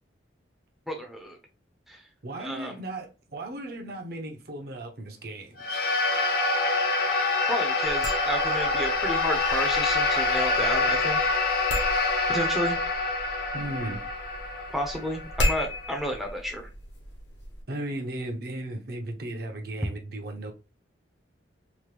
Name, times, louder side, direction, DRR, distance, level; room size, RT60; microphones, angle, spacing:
voice 1, 0.9-1.4 1.9-2.0 2.4-2.7 7.5-11.3 12.3-12.8 14.7-16.7, equal, ahead, 0.5 m, -32 dB
voice 2, 2.2-5.8 13.5-14.0 17.7-20.5, right 1 dB, 55° right, 0.6 m, -36 dB
sound 1, 5.6-16.1, left 3 dB, 50° left, 0.7 m, -26 dB
sound 2, 7.8-17.6, left 1 dB, 75° left, 1.0 m, -35 dB
2.9 x 2.1 x 3.2 m
head